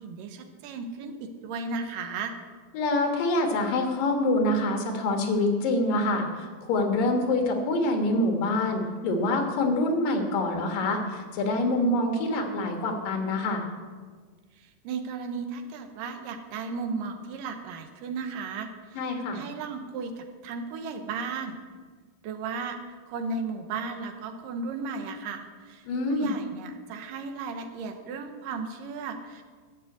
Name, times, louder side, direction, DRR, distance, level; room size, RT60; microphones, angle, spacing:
voice 1, 0.0-2.3 14.6-21.6 22.2-22.8 23.1-29.4, right 4 dB, 80° right, 7 dB, 2.5 m, -35 dB
voice 2, 2.7-13.7 19.0-19.4 25.9-26.3, left 2 dB, 80° left, 4 dB, 3.1 m, -26 dB
11.5 x 6.1 x 8.2 m, 1.5 s
omnidirectional pair, 4.0 m